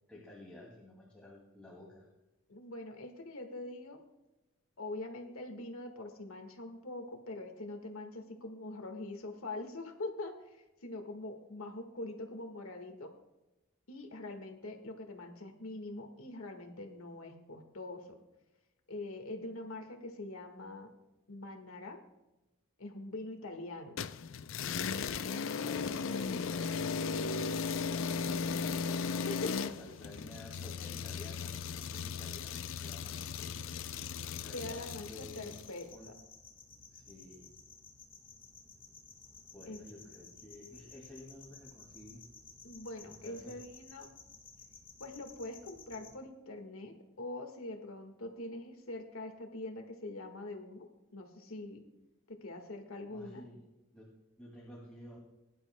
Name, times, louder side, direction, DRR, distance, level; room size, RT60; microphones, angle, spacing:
voice 1, 0.1-2.1 25.3-28.8 29.4-33.6 34.4-36.1 36.9-37.5 39.5-42.3 43.0-43.6 53.1-53.6 53.9-54.1 54.4-55.2, left 1 dB, 5° left, -5 dB, 2.3 m, -52 dB
voice 2, 2.5-4.0 4.8-13.1 13.9-18.2 18.9-20.9 21.3-22.0 22.8-24.0 29.2-29.6 34.5-36.1 39.7-39.9 42.6-44.1 45.0-51.8 52.3-53.4, left 2 dB, 85° left, 5 dB, 1.6 m, -43 dB
sound 1, 24.0-35.7, left 5 dB, 70° left, 0.5 m, -36 dB
sound 2, 28.0-46.2, left 4 dB, 25° left, 1.5 m, -56 dB
21.0 x 11.0 x 2.2 m, 1.0 s
head